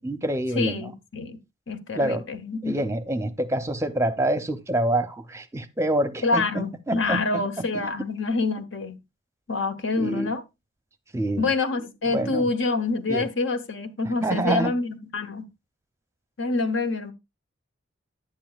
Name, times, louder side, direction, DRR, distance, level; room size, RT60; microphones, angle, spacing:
voice 1, 0.0-0.9 1.9-2.2 2.6-7.9 10.0-10.3 11.1-11.5 12.1-12.5 13.1-13.3 14.2-14.7, right 1 dB, 15° right, 0.6 m, -27 dB
voice 2, 0.5-1.4 1.7-2.8 6.2-9.0 9.5-10.4 11.4-15.5 16.4-17.1, left 3 dB, 75° left, 1.0 m, -26 dB
10.0 x 9.0 x 2.3 m
head